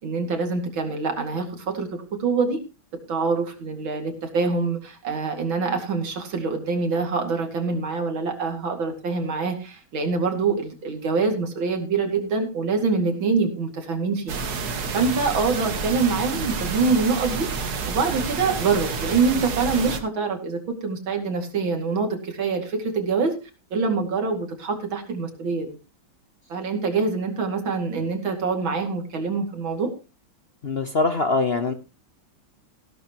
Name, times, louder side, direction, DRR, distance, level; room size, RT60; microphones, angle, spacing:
voice 1, 0.0-2.6 3.1-17.5 17.9-23.4 23.7-25.8 26.5-29.9, right 4 dB, 85° right, 4 dB, 3.2 m, -25 dB
sound 1, 14.3-20.0, right 5 dB, 55° right, 1.8 m, -29 dB
voice 2, 30.6-31.7, left 3 dB, 45° left, 9 dB, 0.8 m, -23 dB
16.5 x 12.0 x 3.0 m, 0.30 s
omnidirectional pair, 2.1 m